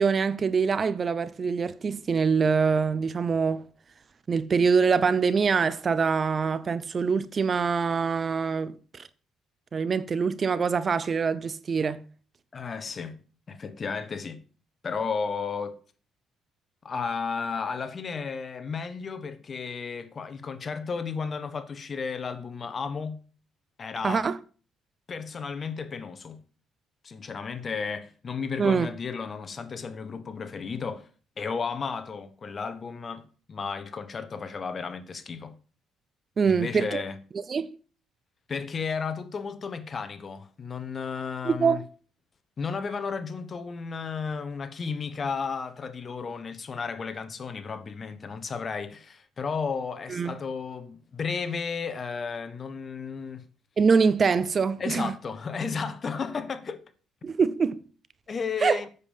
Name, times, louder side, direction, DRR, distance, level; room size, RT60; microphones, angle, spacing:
voice 1, 0.0-3.6 4.3-9.1 9.7-12.0 24.0-24.4 28.6-28.9 36.4-37.0 37.3-37.7 41.4-41.8 50.1-50.4 53.8-55.1 57.2-57.8 58.6-58.8, right 5 dB, 40° right, 0.6 m, -24 dB
voice 2, 12.5-13.2 13.5-14.4 14.8-15.8 16.8-23.2 23.8-24.3 25.1-26.4 27.0-31.1 31.4-35.5 36.5-37.2 38.5-41.8 42.6-53.4 54.8-56.8 58.3-58.9, left 5 dB, 40° left, 1.2 m, -33 dB
8.2 x 7.3 x 5.4 m
cardioid pair, 100°, 0 cm